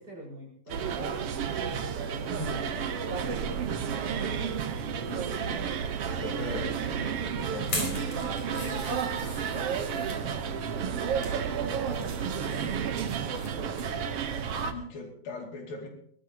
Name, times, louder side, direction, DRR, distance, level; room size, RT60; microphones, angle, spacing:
voice 1, 0.0-1.9 2.1-5.6 6.0-7.5 7.8-10.4 10.7-12.3 13.3-13.9, right 1 dB, 25° right, -2 dB, 5.5 m, -43 dB
voice 2, 0.7-1.2 2.2-2.6 5.1-5.7 6.2-6.7 7.5-7.9 11.7-12.7 14.7-15.9, left 2 dB, 75° left, 1 dB, 4.5 m, -40 dB
sound 1, 0.7-14.7, right 7 dB, 70° right, 1.4 m, -31 dB
sound 2, 7.6-10.2 10.8-11.4 11.8-13.5 13.8-14.0 14.4-14.5, left 2 dB, 50° left, 6.0 m, -40 dB
21.5 x 17.5 x 3.0 m, 0.66 s
omnidirectional pair, 4.2 m